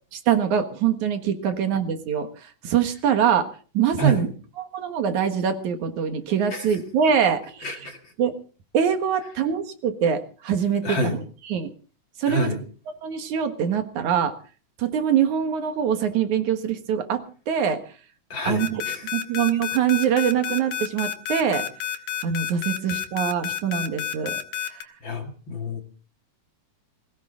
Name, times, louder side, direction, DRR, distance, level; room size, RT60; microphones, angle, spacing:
voice 1, 0.1-3.5 3.7-4.3 4.6-7.7 8.2-8.3 8.7-11.7 12.2-12.5 13.0-14.3 14.8-17.8 18.5-18.8 19.1-21.7 22.2-24.4 24.7-24.8, right 8 dB, 70° right, 8 dB, 2.8 m, -24 dB
voice 2, 7.6-8.1 10.8-11.2 12.3-12.6 18.3-19.1 25.0-25.8, right 2 dB, 45° left, 4 dB, 2.1 m, -27 dB
sound 1, 18.6-24.8, left 10 dB, 90° left, 3.1 m, -29 dB
21.5 x 17.0 x 3.8 m, 0.39 s
omnidirectional pair, 3.7 m